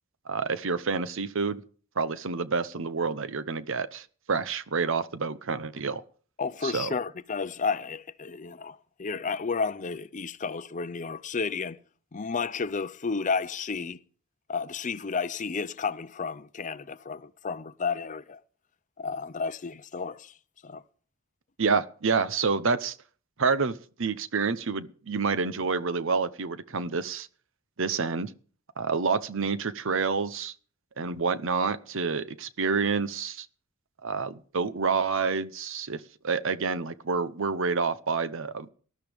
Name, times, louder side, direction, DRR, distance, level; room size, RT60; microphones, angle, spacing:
voice 1, 0.3-1.6 2.0-6.0 6.6-6.9 21.6-23.0 23.4-27.3 27.8-28.3 28.8-30.5 31.0-33.5 34.0-38.7, right 5 dB, 60° right, 0.8 m, -28 dB
voice 2, 6.4-11.8 12.1-14.0 14.5-18.4 19.0-20.3 20.6-20.8, left 5 dB, 35° left, 0.6 m, -32 dB
19.0 x 12.0 x 3.5 m
head